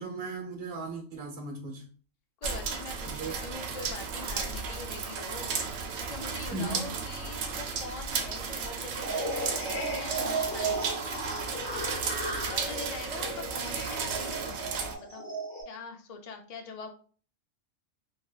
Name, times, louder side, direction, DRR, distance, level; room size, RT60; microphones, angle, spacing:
voice 1, 0.0-1.8 3.1-3.3 6.4-7.0, right 2 dB, 50° right, 1.0 m, -37 dB
voice 2, 2.4-11.0 12.5-15.3 15.7-16.9, left 4 dB, 70° left, 0.3 m, -43 dB
sound 1, 2.4-14.9, right 5 dB, 80° right, 1.0 m, -34 dB
sound 2, 9.0-15.6, right 2 dB, 10° left, 1.3 m, -35 dB
3.1 x 2.8 x 2.3 m
omnidirectional pair, 1.3 m